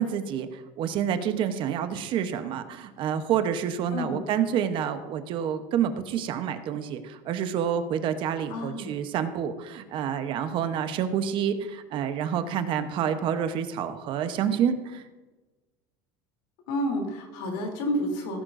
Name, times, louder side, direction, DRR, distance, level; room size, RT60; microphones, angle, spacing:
voice 1, 0.0-15.0, right 8 dB, 45° right, 9 dB, 0.9 m, -28 dB
voice 2, 8.5-8.9 16.7-18.4, equal, 75° left, 1 dB, 3.1 m, -30 dB
16.5 x 9.7 x 2.6 m, 1.2 s
supercardioid pair, 135°, 11 cm